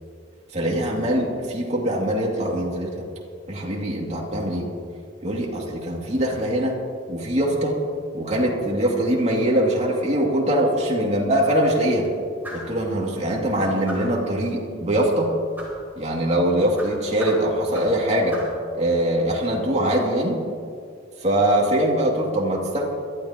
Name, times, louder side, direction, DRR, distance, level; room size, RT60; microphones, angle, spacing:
voice 1, 0.5-2.9 3.5-4.7 5.2-6.7 7.1-7.8 8.1-12.1 12.5-15.3 16.0-18.4 18.7-20.4 21.2-22.9, right 1 dB, 35° right, -3 dB, 2.5 m, -22 dB
sound 1, 12.4-12.8 13.9-14.2 15.6-15.8 16.8-18.0 18.3-18.6, right 1 dB, 10° right, 3.8 m, -37 dB
22.5 x 13.5 x 3.0 m, 2.2 s
head